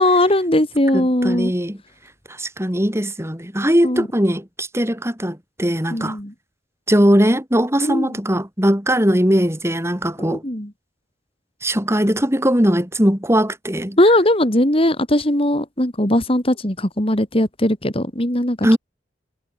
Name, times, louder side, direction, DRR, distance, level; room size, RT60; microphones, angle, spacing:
voice 1, 0.0-1.5 3.8-4.1 5.9-6.3 7.8-8.1 10.3-10.7 14.0-18.8, left 1 dB, 30° left, 4.3 m, -19 dB
voice 2, 0.9-1.8 2.4-6.2 6.9-10.4 11.6-14.0 18.6-18.8, equal, 15° right, 6.4 m, -19 dB
head